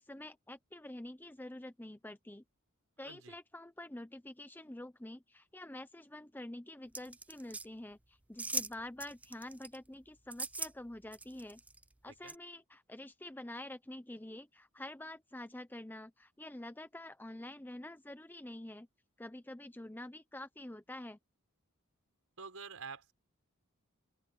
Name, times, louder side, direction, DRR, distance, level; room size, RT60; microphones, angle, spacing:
voice 1, 0.0-2.4 3.0-11.6 12.0-18.9 19.2-21.2, left 1 dB, 10° left, 0.7 m, -47 dB
voice 2, 3.0-3.4 12.1-12.4 22.4-23.1, right 5 dB, 75° right, 5.8 m, -48 dB
sound 1, 6.9-7.6 8.4-8.7 9.0-9.8 10.3-10.7 11.1-11.8 12.3-12.4, right 3 dB, 5° right, 0.3 m, -39 dB
open air
head